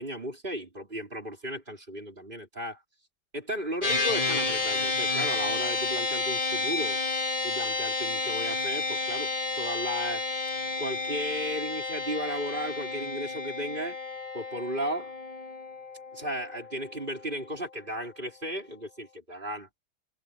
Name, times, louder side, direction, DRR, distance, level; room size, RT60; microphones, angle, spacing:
voice 1, 0.0-2.8 3.3-7.0 7.4-10.2 10.8-14.0 14.3-15.1 16.1-19.7, equal, 30° right, 5.1 m, -35 dB
sound 1, 3.8-17.4, left 3 dB, 20° left, 1.5 m, -31 dB
omnidirectional pair, 1.8 m